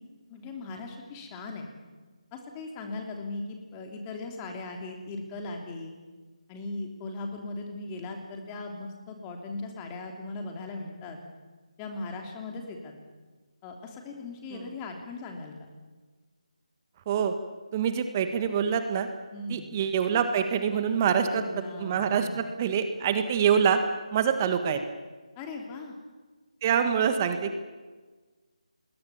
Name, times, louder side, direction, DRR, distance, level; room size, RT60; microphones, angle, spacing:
voice 1, 0.3-1.7 2.3-5.9 6.5-11.2 11.8-12.9 13.6-15.7 19.3-19.7 21.2-22.4 25.4-25.9, left 3 dB, 15° left, 3 dB, 3.2 m, -38 dB
voice 2, 17.7-19.1 19.5-23.8 24.1-24.8 26.6-27.5, right 7 dB, 25° right, 8 dB, 1.6 m, -25 dB
27.5 x 21.5 x 7.2 m, 1.4 s
figure-of-eight pair, 155°, 4 cm